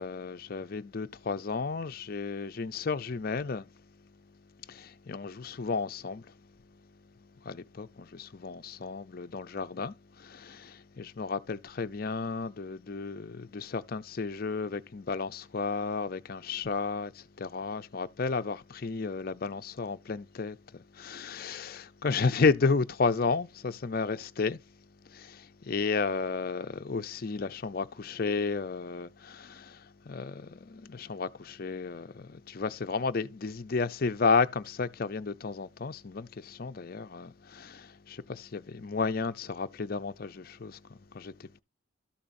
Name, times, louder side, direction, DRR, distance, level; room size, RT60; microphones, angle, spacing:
voice 1, 0.0-3.6 4.7-6.3 7.4-24.6 25.0-41.6, left 4 dB, 45° left, 0.5 m, -32 dB
13.0 x 7.2 x 2.6 m
head